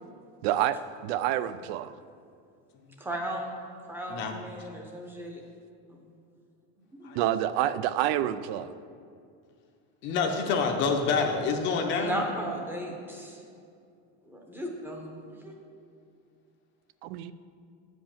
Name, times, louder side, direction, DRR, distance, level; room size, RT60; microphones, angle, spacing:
voice 1, 0.4-1.9 7.1-8.7 17.0-17.3, right 12 dB, 65° right, 15 dB, 0.5 m, -28 dB
voice 2, 3.0-3.6 3.9-5.4 5.9-6.0 7.0-7.1 11.9-13.4 14.3-15.0 15.4-15.5, right 1 dB, 5° right, 1 dB, 0.7 m, -35 dB
voice 3, 10.0-12.2, left 5 dB, 35° left, 3 dB, 0.7 m, -27 dB
9.2 x 5.2 x 7.2 m, 2.4 s
cardioid pair, 180°, 33 cm